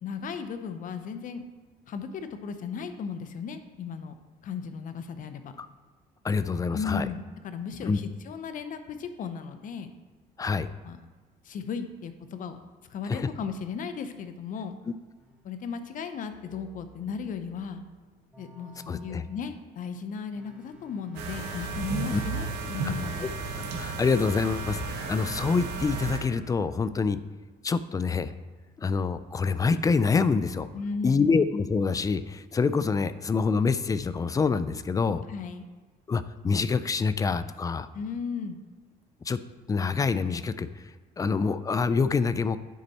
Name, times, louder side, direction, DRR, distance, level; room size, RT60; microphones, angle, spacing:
voice 1, 0.0-1.4 1.9-4.1 4.4-5.5 6.7-9.9 10.8-11.0 11.4-12.6 12.9-14.8 15.4-17.8 18.4-23.3 30.7-31.4 35.3-35.7 37.9-38.6, left 6 dB, 50° left, 9 dB, 0.7 m, -36 dB
voice 2, 6.2-7.1 7.9-8.0 10.4-10.7 13.1-13.3 18.9-19.2 22.1-22.2 22.8-22.9 23.8-27.2 27.6-28.3 28.8-30.7 31.0-35.2 36.1-37.9 39.3-39.4 39.7-40.7 41.2-42.6, left 4 dB, 20° left, 14 dB, 0.3 m, -26 dB
sound 1, 15.2-15.5 16.3-19.7 20.3-27.2, equal, 5° right, 1.6 m, -56 dB
sound 2, 21.2-26.2, right 4 dB, 85° right, 1.1 m, -33 dB
10.0 x 4.1 x 4.1 m, 1.3 s
cardioid pair, 110°, 17 cm